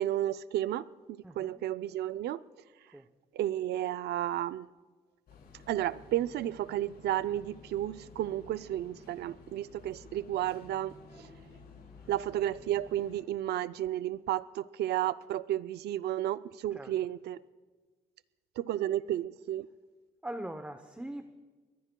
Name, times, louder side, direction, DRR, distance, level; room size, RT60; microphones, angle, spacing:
voice 1, 0.0-2.4 3.3-4.7 5.7-10.9 12.1-17.4 18.6-19.7, right 12 dB, 85° right, 14 dB, 0.4 m, -32 dB
voice 2, 1.2-1.6 2.9-3.1 16.7-16.9 20.2-21.3, right 1 dB, 10° right, 8 dB, 0.7 m, -41 dB
sound 1, 5.3-13.2, left 3 dB, 75° left, 5.9 m, -54 dB
28.0 x 22.5 x 2.2 m, 1.4 s
cardioid pair, 120°, 16 cm